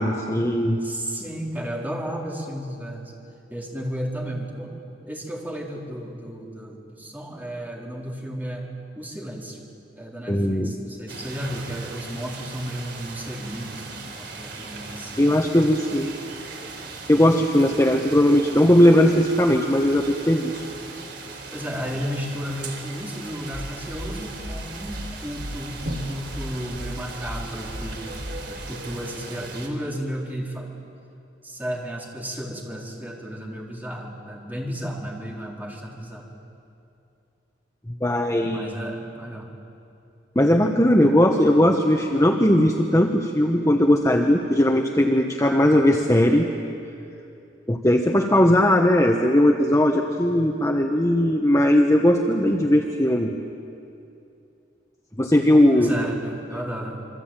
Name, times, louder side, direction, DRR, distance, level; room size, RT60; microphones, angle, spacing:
voice 1, 0.0-0.8 10.3-10.7 15.2-16.1 17.1-20.6 38.0-38.7 40.3-46.5 47.7-53.3 55.2-56.0, left 1 dB, 15° left, 2 dB, 1.2 m, -18 dB
voice 2, 0.8-3.1 3.5-4.8 5.1-8.7 8.9-9.7 10.0-15.2 21.5-28.2 28.5-30.7 31.4-36.3 38.5-39.5 55.7-57.1, equal, 10° right, -2 dB, 4.1 m, -33 dB
sound 1, 11.1-29.7, right 3 dB, 60° right, 4.3 m, -38 dB
sound 2, 23.5-28.7, equal, 55° left, 4.6 m, -35 dB
27.0 x 24.0 x 9.0 m, 2.6 s
head